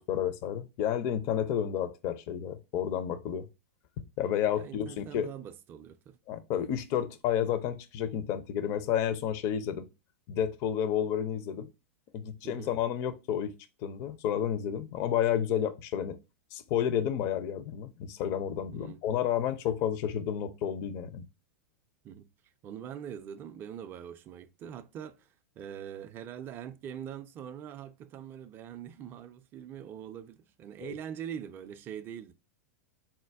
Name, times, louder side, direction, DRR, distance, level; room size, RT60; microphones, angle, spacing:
voice 1, 0.0-3.5 4.2-5.3 6.3-9.9 10.3-11.7 12.1-13.5 13.8-16.2 16.5-21.2 30.8-30.9, left 9 dB, 40° left, 0.4 m, -31 dB
voice 2, 4.6-6.2 12.4-12.8 18.7-19.0 22.0-22.3 22.6-25.3 25.6-32.3, right 9 dB, 25° right, 0.3 m, -43 dB
4.1 x 2.2 x 3.3 m
figure-of-eight pair, 90°, 8 cm